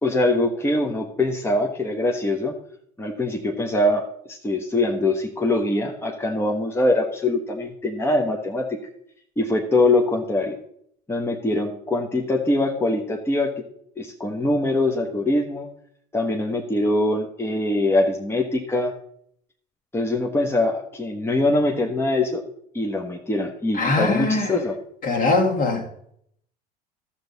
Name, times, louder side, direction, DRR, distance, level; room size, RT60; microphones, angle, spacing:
voice 1, 0.0-2.5 3.0-8.8 9.4-10.5 11.1-13.5 14.0-15.7 16.1-18.9 19.9-22.4 22.7-24.7, left 2 dB, 10° left, 1.1 m, -23 dB
voice 2, 23.7-24.5 25.0-25.9, left 3 dB, 45° left, 2.1 m, -21 dB
13.0 x 7.1 x 4.1 m
hypercardioid pair, 70°, 20 cm